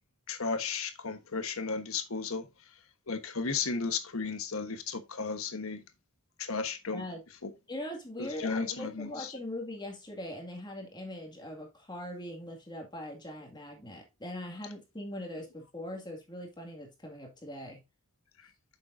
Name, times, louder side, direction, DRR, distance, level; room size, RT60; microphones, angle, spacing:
voice 1, 0.3-2.5 3.1-5.8 6.4-7.0 7.4-7.5 8.2-9.4, left 4 dB, 70° left, 1.2 m, -34 dB
voice 2, 7.7-17.8, left 1 dB, 20° left, 2.1 m, -41 dB
9.0 x 6.8 x 2.6 m
head